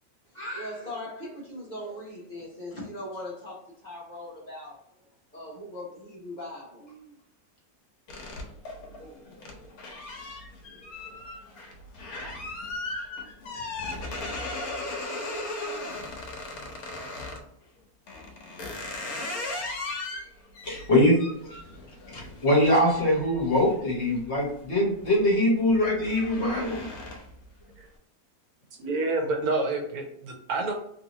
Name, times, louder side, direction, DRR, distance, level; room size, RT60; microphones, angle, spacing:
voice 1, 0.3-4.8 5.3-7.1, left 1 dB, 35° left, -5 dB, 1.0 m, -39 dB
sound 1, 8.1-17.5 18.1-24.5 24.9-25.3 25.6-27.4, left 2 dB, 80° left, 1.2 m, -37 dB
voice 2, 20.6-21.2 22.1-26.9, left 1 dB, 50° left, -2 dB, 1.2 m, -23 dB
voice 3, 28.7-30.7, right 2 dB, 80° right, 1 dB, 1.3 m, -28 dB
3.1 x 2.7 x 2.9 m, 0.70 s
omnidirectional pair, 1.6 m